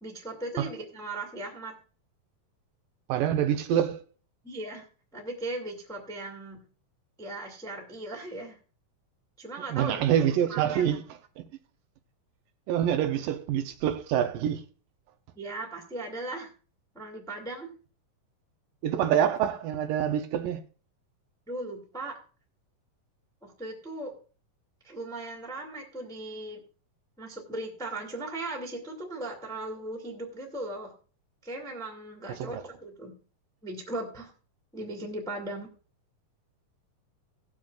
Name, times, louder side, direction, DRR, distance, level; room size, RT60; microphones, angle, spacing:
voice 1, 0.0-1.8 4.4-4.9 5.1-6.6 7.2-8.6 9.4-10.0 10.5-11.0 15.3-16.5 16.9-17.7 21.5-22.2 23.4-24.1 24.8-26.6 27.2-30.9 31.4-33.1 33.6-34.3 34.7-35.7, right 2 dB, ahead, 1.1 m, -38 dB
voice 2, 3.1-4.0 9.7-11.0 11.4-11.5 12.7-14.6 18.8-20.6 32.4-32.6, right 10 dB, 80° right, 2.2 m, -26 dB
18.5 x 7.3 x 2.4 m
omnidirectional pair, 4.0 m